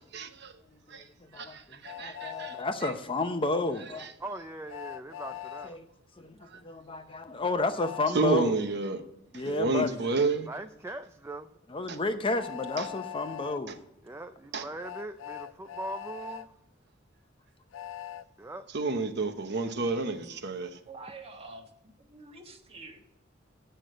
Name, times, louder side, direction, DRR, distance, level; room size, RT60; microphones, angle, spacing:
voice 1, 0.1-0.6 0.9-1.1 1.3-2.6 2.8-2.9 4.0-4.1 6.4-6.6 8.1-9.0 9.3-10.5 11.9-12.0 12.8-12.9 14.5-14.6 18.7-20.8, right 3 dB, 60° right, 0.9 m, -30 dB
voice 2, 1.3-4.1 5.6-5.9 6.2-8.6 9.3-10.0 11.7-13.8, left 2 dB, 25° left, 0.7 m, -31 dB
Train, 1.8-2.6 4.7-5.7 7.8-8.1 10.2-10.3 12.4-13.6 14.8-16.5 17.7-18.2, left 11 dB, 80° left, 0.5 m, -41 dB
voice 3, 4.2-5.8 9.4-9.8 10.5-11.5 14.0-16.5 18.4-18.7, right 2 dB, 15° right, 0.3 m, -41 dB
voice 4, 20.9-23.0, right 3 dB, 30° right, 1.3 m, -47 dB
8.3 x 6.6 x 7.6 m
head